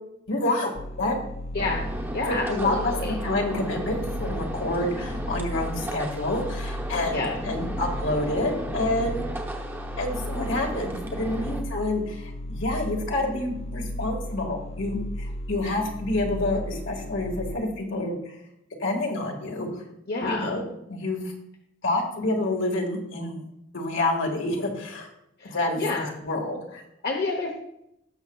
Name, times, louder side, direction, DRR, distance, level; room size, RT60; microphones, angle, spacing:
voice 1, 0.3-0.7 1.0-1.2 2.3-7.2 7.4-9.3 10.0-18.3 18.8-19.7 20.2-20.6 20.9-21.2 21.8-23.4 23.7-25.1 25.4-26.8, left 2 dB, 70° left, 1 dB, 1.9 m, -28 dB
sound 1, 0.8-17.6, equal, 35° left, 0.5 m, -35 dB
voice 2, 1.5-1.8 2.1-3.2 7.0-7.3 20.1-20.6 25.4-26.1 27.0-27.5, left 3 dB, 55° left, 1 dB, 1.0 m, -29 dB
sound 2, 1.6-11.6, right 1 dB, 10° right, 1.0 m, -35 dB
17.5 x 6.5 x 2.4 m, 0.81 s
head